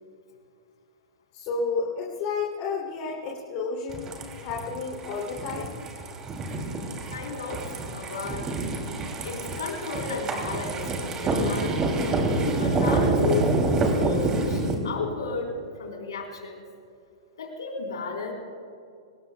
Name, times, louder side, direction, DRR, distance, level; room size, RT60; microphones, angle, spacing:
voice 1, 1.3-4.1 4.4-5.8, left 4 dB, 40° left, -2 dB, 2.9 m, -31 dB
sound 1, 3.9-14.7, right 2 dB, 25° right, 2.8 m, -27 dB
voice 2, 7.1-8.5 9.2-10.9 11.2-16.7 17.4-18.3, left 4 dB, 70° left, 1 dB, 3.9 m, -34 dB
25.0 x 20.0 x 2.3 m, 2.3 s
figure-of-eight pair, 105°, 3 cm